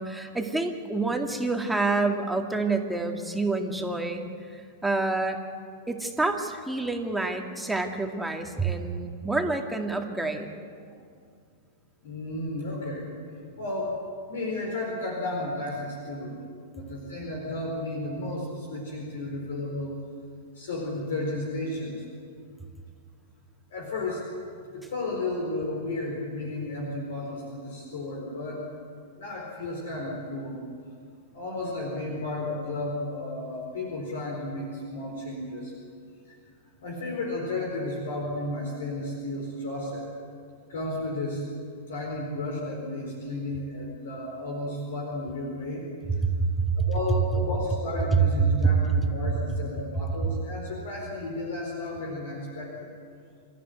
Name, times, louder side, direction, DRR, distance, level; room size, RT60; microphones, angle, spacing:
voice 1, 0.0-4.2 4.5-5.4 5.9-10.5 46.2-46.9 48.6-48.7, right 3 dB, 5° right, 3 dB, 2.2 m, -28 dB
voice 2, 12.0-13.1 13.6-14.0 14.3-16.4 16.7-19.9 20.5-22.0 23.7-24.2 24.7-28.6 29.2-30.6 31.3-35.7 36.8-40.1 40.7-41.4 41.9-45.8 46.8-52.9, left 2 dB, 65° left, 0 dB, 4.4 m, -33 dB
27.0 x 14.0 x 9.4 m, 2.2 s
figure-of-eight pair, 95°, 0 cm